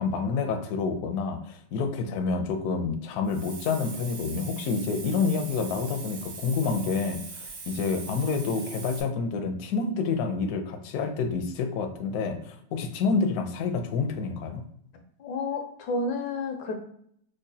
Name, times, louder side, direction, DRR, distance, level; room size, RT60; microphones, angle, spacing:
voice 1, 0.0-14.6, left 4 dB, 70° left, 6 dB, 0.9 m, -28 dB
Hiss, 3.3-9.0, right 4 dB, 90° right, 1.4 m, -41 dB
voice 2, 15.2-16.7, left 3 dB, 90° left, 4 dB, 1.4 m, -30 dB
4.8 x 2.1 x 2.6 m, 0.67 s
omnidirectional pair, 1.9 m